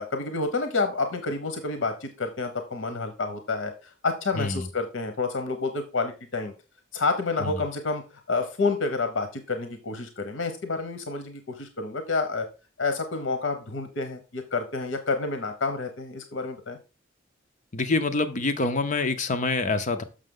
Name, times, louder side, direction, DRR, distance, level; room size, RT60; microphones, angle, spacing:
voice 1, 0.0-6.5 6.9-12.5 12.8-16.8, left 3 dB, 75° left, 7 dB, 0.9 m, -29 dB
voice 2, 17.7-20.0, left 3 dB, 40° left, 9 dB, 0.6 m, -26 dB
6.5 x 6.3 x 3.7 m, 0.32 s
head